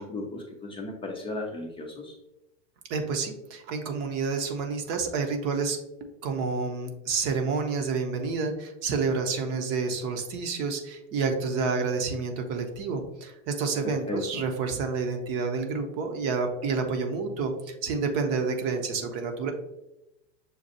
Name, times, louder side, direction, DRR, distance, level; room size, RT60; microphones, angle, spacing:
voice 1, 0.0-2.2 13.8-14.4, left 2 dB, 15° left, 0 dB, 0.5 m, -35 dB
voice 2, 2.9-5.8 6.2-19.5, right 4 dB, 45° right, 5 dB, 0.8 m, -29 dB
6.5 x 2.4 x 2.7 m, 0.90 s
hypercardioid pair, 105°, 36 cm